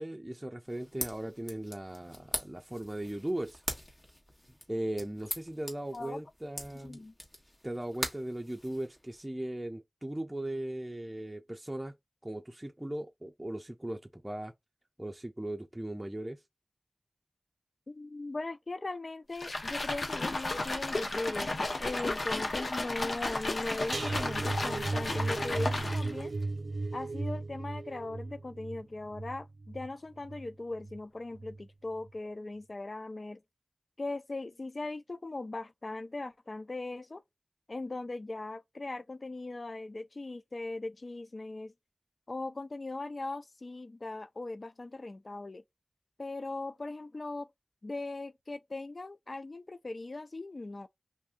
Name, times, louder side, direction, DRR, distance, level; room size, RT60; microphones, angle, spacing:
voice 1, 0.0-3.6 4.7-7.0 7.6-11.9 12.2-14.5 15.0-16.4, right 1 dB, 15° right, 0.6 m, -38 dB
sound 1, 0.7-9.2, left 1 dB, 30° left, 1.4 m, -42 dB
voice 2, 6.8-7.1 17.9-26.3 26.9-33.4 34.0-37.2 37.7-41.7 42.3-45.6 46.2-47.5 47.8-50.9, left 2 dB, 55° left, 0.4 m, -39 dB
sound 2, 19.3-26.2, left 2 dB, 75° left, 0.8 m, -33 dB
sound 3, 23.9-31.0 31.3-31.7 32.0-32.1, right 3 dB, 75° right, 0.4 m, -36 dB
2.7 x 2.7 x 3.5 m
wide cardioid pair, 60°, 0 cm